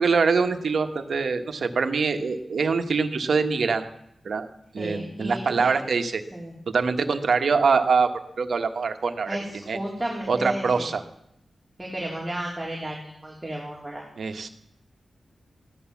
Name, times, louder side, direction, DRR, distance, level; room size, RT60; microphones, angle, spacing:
voice 1, 0.0-3.9 4.2-4.5 4.7-6.2 6.7-8.1 8.4-9.4 9.7-9.8 10.3-11.0 14.2-14.5, right 5 dB, 75° right, 7 dB, 1.4 m, -24 dB
voice 2, 4.8-5.7 6.3-6.5 9.3-10.9 11.8-14.0, right 1 dB, 10° right, -4 dB, 3.7 m, -33 dB
15.5 x 11.0 x 7.2 m, 0.75 s
wide cardioid pair, 100°, 0 cm